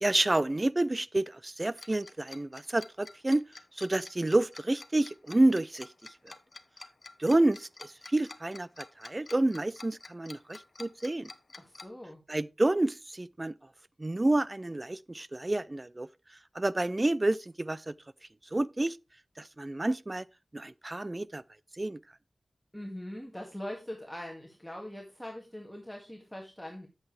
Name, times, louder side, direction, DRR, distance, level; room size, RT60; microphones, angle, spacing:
voice 1, 0.0-3.4 3.8-5.9 6.2-6.3 7.2-8.7 9.0-11.3 12.3-13.5 14.0-16.1 16.5-17.9 18.5-19.0 19.4-20.3 20.5-21.4 21.8-22.0, right 2 dB, 30° right, 0.4 m, -29 dB
Tick-tock, 1.8-11.8, left 3 dB, 55° left, 0.9 m, -48 dB
voice 2, 11.6-12.2 22.7-26.9, left 1 dB, 5° left, 1.8 m, -42 dB
8.8 x 7.9 x 3.2 m
wide cardioid pair, 60°, 0 cm